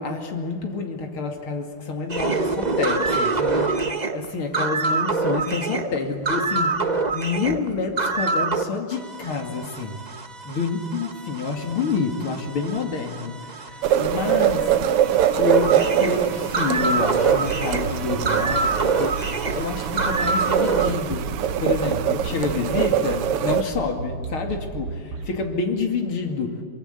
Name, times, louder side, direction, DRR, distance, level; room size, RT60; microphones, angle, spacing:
voice 1, 0.0-10.0 10.4-14.8 15.4-21.3 21.6-26.6, left 4 dB, 70° left, 4 dB, 3.4 m, -28 dB
sound 1, 2.1-8.6 8.9-20.9, right 3 dB, 25° right, 0.9 m, -26 dB
sound 2, 13.8-23.6, right 10 dB, 90° right, 2.0 m, -23 dB
sound 3, 17.2-25.3, right 4 dB, 75° right, 3.5 m, -34 dB
24.0 x 23.5 x 8.5 m, 2.1 s
omnidirectional pair, 2.4 m